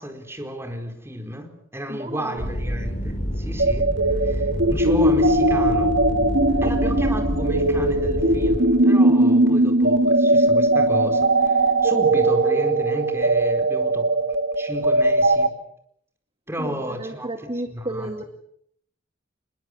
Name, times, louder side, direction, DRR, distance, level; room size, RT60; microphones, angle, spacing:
voice 1, 0.0-5.9 6.6-14.1 14.6-15.5 16.5-18.1, equal, 10° right, 5 dB, 4.4 m, -33 dB
voice 2, 1.9-2.5 6.5-6.7 16.6-18.2, right 1 dB, 30° right, 6 dB, 1.8 m, -32 dB
sound 1, 2.4-8.6, equal, 35° left, 3.6 m, -28 dB
sound 2, 3.6-15.5, right 1 dB, 65° right, 2.0 m, -19 dB
25.5 x 22.0 x 8.1 m, 0.69 s
head